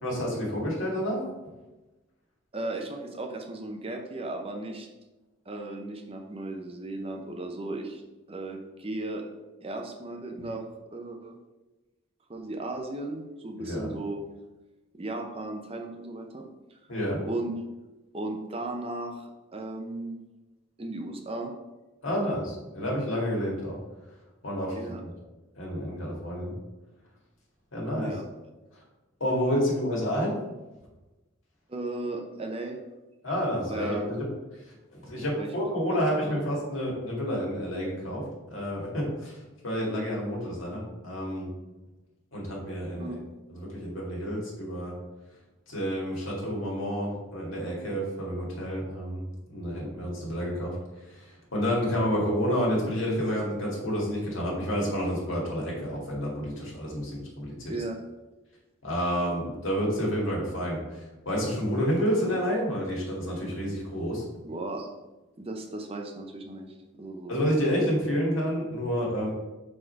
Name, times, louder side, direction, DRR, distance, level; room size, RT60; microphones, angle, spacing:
voice 1, 0.0-1.2 13.6-13.9 16.9-17.2 22.0-23.7 24.4-25.1 25.6-26.5 27.7-28.1 29.2-30.4 33.2-34.3 34.9-38.2 38.5-39.3 39.6-41.5 42.3-43.2 43.5-44.9 45.7-49.2 49.5-50.7 51.0-57.7 58.8-64.2 67.3-69.3, equal, 75° left, -3 dB, 1.9 m, -29 dB
voice 2, 2.5-4.9 5.5-8.0 8.3-9.2 9.6-10.6 10.9-11.4 12.3-14.2 14.9-16.4 16.7-16.8 17.3-17.5 18.1-20.2 20.8-21.5 24.7-25.0 27.9-28.2 31.7-32.8 33.7-34.2 35.2-35.5 35.9-36.4 43.0-43.2 57.7-58.0 64.4-64.9 65.4-67.3, right 2 dB, 30° right, 2 dB, 0.6 m, -36 dB
4.9 x 4.3 x 4.5 m, 1.1 s
head